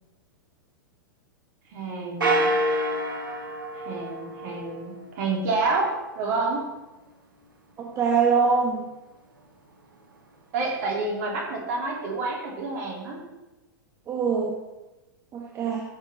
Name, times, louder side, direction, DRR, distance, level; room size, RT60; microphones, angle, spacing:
voice 1, 1.7-2.5 3.7-6.6 10.5-13.3, right 3 dB, 50° right, -1 dB, 3.7 m, -29 dB
sound 1, 2.2-4.9, right 1 dB, 75° right, 2.0 m, -27 dB
voice 2, 7.8-8.8 14.1-14.6 15.3-15.8, right 5 dB, 25° right, 0 dB, 1.5 m, -23 dB
16.0 x 7.3 x 4.5 m, 1.1 s
figure-of-eight pair, 100°, 11 cm